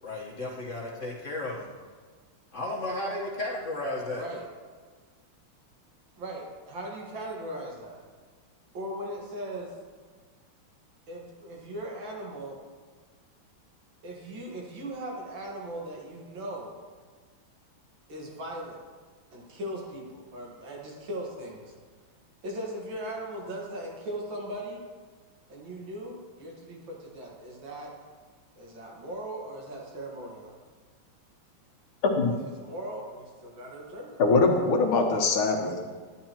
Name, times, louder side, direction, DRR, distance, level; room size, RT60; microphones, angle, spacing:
voice 1, 0.0-1.7 2.5-4.2, left 2 dB, 40° left, -3 dB, 1.4 m, -33 dB
voice 2, 4.1-4.5 6.2-8.0 8.7-9.7 11.1-12.6 14.0-16.7 18.1-18.8 19.3-21.7 22.4-24.8 25.5-27.9 28.6-30.6 32.6-34.2, right 1 dB, 65° right, -1 dB, 2.3 m, -38 dB
voice 3, 32.0-32.3 34.2-35.8, left 3 dB, 80° left, 2 dB, 1.9 m, -23 dB
10.5 x 10.5 x 3.0 m, 1.5 s
omnidirectional pair, 2.3 m